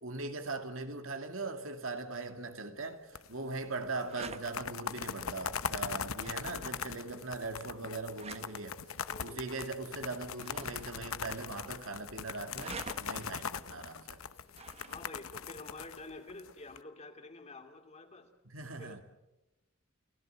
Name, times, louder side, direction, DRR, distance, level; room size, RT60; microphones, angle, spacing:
voice 1, 0.0-8.8 9.2-14.2 18.4-19.0, right 3 dB, 75° right, 2.3 m, -40 dB
sound 1, 2.8-16.6, right 4 dB, 30° right, 1.3 m, -52 dB
sound 2, 3.2-3.6 3.8-3.9 4.3-16.8, left 7 dB, 90° left, 1.0 m, -40 dB
voice 2, 9.1-9.6 14.9-18.3 18.8-19.0, left 2 dB, 30° left, 2.7 m, -49 dB
29.5 x 17.0 x 8.0 m
head